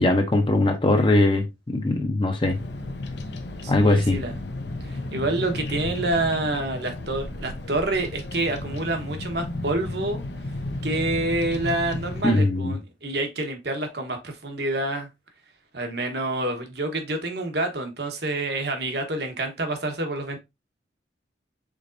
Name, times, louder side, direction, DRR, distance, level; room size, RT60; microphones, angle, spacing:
voice 1, 0.0-2.6 3.7-4.2 12.2-12.7, left 2 dB, 25° left, 0.7 m, -21 dB
Bird vocalization bird call bird song, 2.4-12.2, left 2 dB, 65° left, 0.8 m, -33 dB
voice 2, 3.6-4.4 4.8-10.2 10.8-15.1 15.7-20.4, right 2 dB, 60° right, 1.1 m, -27 dB
5.0 x 4.1 x 2.6 m
head